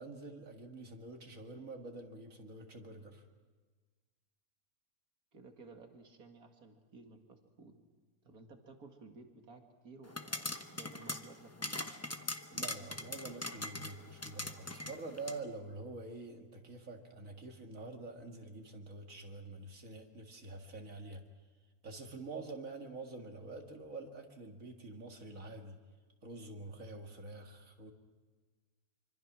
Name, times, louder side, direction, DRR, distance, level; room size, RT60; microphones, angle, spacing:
voice 1, 0.0-3.2 12.5-21.2 21.8-25.8 26.2-27.9, right 3 dB, 65° right, 3 dB, 2.4 m, -47 dB
voice 2, 5.3-7.7 8.2-11.9, right 3 dB, 80° right, 4 dB, 2.6 m, -55 dB
sound 1, 10.1-15.4, left 2 dB, 15° left, 0.8 m, -42 dB
25.5 x 25.0 x 6.1 m, 1.4 s
omnidirectional pair, 1.5 m